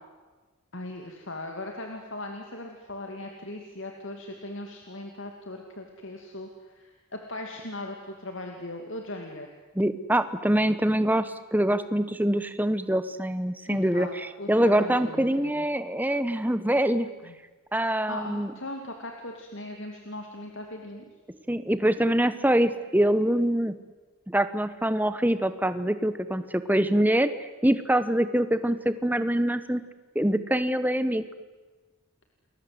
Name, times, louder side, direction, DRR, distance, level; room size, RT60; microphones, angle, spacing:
voice 1, 0.7-9.5 13.6-15.6 17.2-17.3 18.1-21.0, left 1 dB, 60° left, 3 dB, 2.7 m, -39 dB
voice 2, 9.8-17.1 17.7-18.5 21.5-23.7 24.3-27.3 27.6-29.8 30.1-31.2, right 1 dB, 10° right, 12 dB, 1.1 m, -24 dB
29.0 x 22.0 x 7.9 m, 1.3 s
head